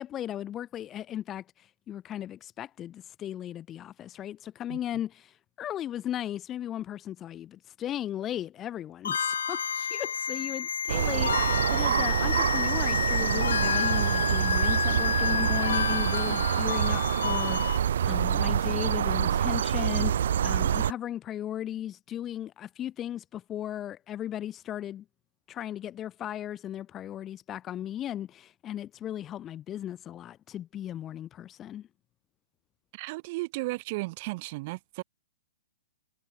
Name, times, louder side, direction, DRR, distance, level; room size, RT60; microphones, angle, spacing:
voice 1, 0.0-25.0 25.5-31.9, left 11 dB, 15° left, 2.3 m, -36 dB
sound 1, 9.0-17.8, left 7 dB, 85° left, 4.2 m, -30 dB
sound 2, 10.9-20.9, right 9 dB, 65° right, 1.1 m, -26 dB
voice 2, 32.9-35.0, right 23 dB, 35° right, 4.8 m, -34 dB
hypercardioid pair, 160°, 0 cm